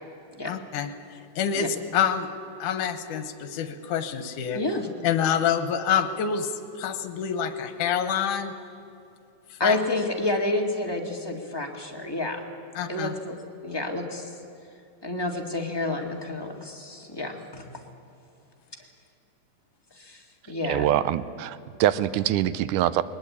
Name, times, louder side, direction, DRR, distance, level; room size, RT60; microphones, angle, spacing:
voice 1, 0.5-0.9 1.4-2.3 2.6-4.6 5.0-6.5 6.8-8.5 9.6-9.8 12.8-13.1, left 8 dB, 80° left, 10 dB, 2.6 m, -26 dB
voice 2, 4.5-4.9 9.6-12.4 12.9-13.4 13.6-14.3 15.0-17.8 20.0-20.8, left 2 dB, 10° left, 1 dB, 1.1 m, -29 dB
voice 3, 20.7-23.0, right 12 dB, 80° right, 15 dB, 2.2 m, -24 dB
20.5 x 20.0 x 8.5 m, 2.6 s
omnidirectional pair, 3.6 m